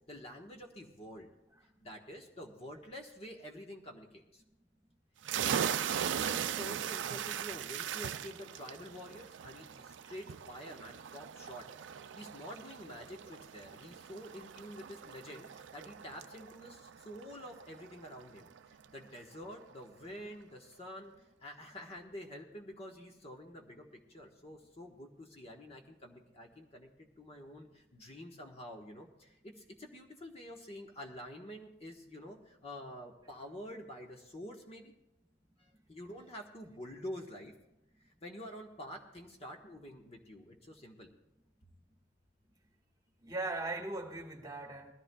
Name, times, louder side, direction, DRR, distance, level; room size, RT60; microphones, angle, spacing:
voice 1, 0.1-1.3 1.8-4.4 5.3-34.9 35.6-37.5 38.0-41.1, equal, 35° left, 1 dB, 1.3 m, -48 dB
sound 1, 5.2-18.6, right 9 dB, 70° right, 0.4 m, -39 dB
voice 2, 43.2-44.9, right 2 dB, 20° right, 1 dB, 1.5 m, -39 dB
21.0 x 14.0 x 2.3 m, 0.90 s
head